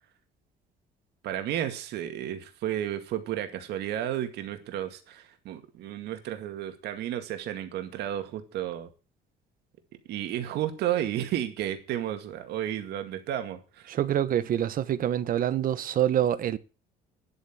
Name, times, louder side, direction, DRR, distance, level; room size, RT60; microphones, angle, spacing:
voice 1, 1.2-8.9 10.1-13.9, right 11 dB, 75° right, 2.2 m, -32 dB
voice 2, 13.9-16.6, right 11 dB, 55° right, 1.1 m, -26 dB
10.5 x 8.5 x 7.4 m
cardioid pair, 110°, 17 cm